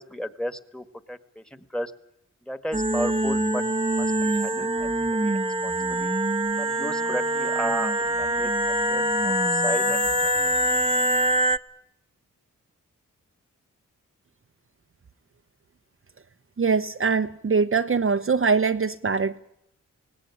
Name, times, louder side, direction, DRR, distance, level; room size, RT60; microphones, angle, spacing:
voice 1, 0.0-1.9 2.4-3.6 4.0-6.1 6.6-10.0, equal, ahead, 12 dB, 1.8 m, -34 dB
sound 1, 2.7-11.6, right 1 dB, 15° right, 1.1 m, -24 dB
voice 2, 16.6-19.4, right 5 dB, 40° right, 8 dB, 0.8 m, -23 dB
18.0 x 17.5 x 9.8 m, 0.80 s
cardioid pair, 40°, 33 cm